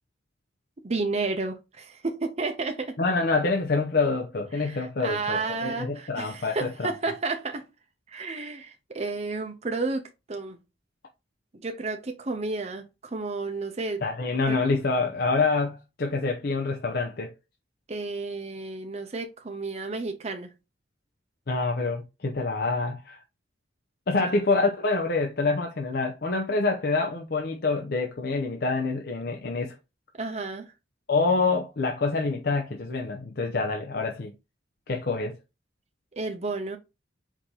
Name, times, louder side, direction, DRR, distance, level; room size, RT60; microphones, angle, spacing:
voice 1, 0.8-3.0 4.5-7.6 8.1-10.0 10.3-10.6 11.5-14.0 14.5-14.6 17.9-20.5 24.2-24.3 30.1-30.6 36.2-36.8, right 3 dB, 35° right, 0.6 m, -31 dB
voice 2, 3.0-6.9 14.0-17.3 21.5-23.2 24.1-29.7 31.1-34.3 34.9-35.4, left 3 dB, 55° left, 0.6 m, -26 dB
4.8 x 2.8 x 3.7 m
head